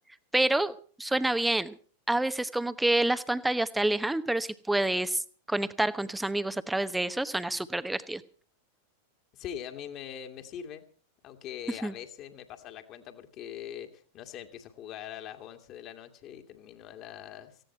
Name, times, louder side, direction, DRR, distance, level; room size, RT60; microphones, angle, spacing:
voice 1, 0.3-1.7 2.1-5.2 5.5-8.2 11.8-11.9, right 1 dB, 5° right, 14 dB, 1.0 m, -28 dB
voice 2, 9.3-10.8 11.2-17.6, left 9 dB, 35° left, 6 dB, 2.2 m, -42 dB
18.5 x 16.0 x 4.4 m, 0.41 s
figure-of-eight pair, 90°, 0 cm